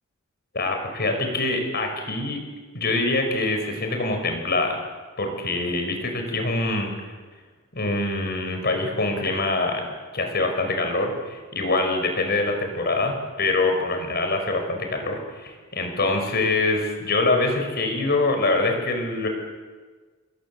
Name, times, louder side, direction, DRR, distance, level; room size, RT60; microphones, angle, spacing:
voice 1, 0.5-2.4 2.7-4.8 5.2-6.9 7.7-9.9 10.1-19.3, left 2 dB, 50° left, 5 dB, 5.7 m, -24 dB
27.5 x 22.0 x 7.9 m, 1.4 s
head